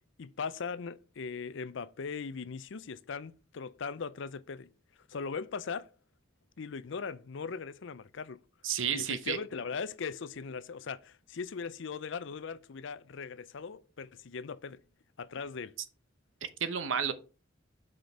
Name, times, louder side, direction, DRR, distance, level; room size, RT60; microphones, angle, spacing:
voice 1, 0.2-4.7 5.1-5.9 6.6-8.4 8.9-14.8 15.2-15.7, left 5 dB, 65° left, 0.5 m, -39 dB
voice 2, 8.6-9.4 16.4-17.1, right 7 dB, 75° right, 1.0 m, -31 dB
6.4 x 5.0 x 5.7 m
head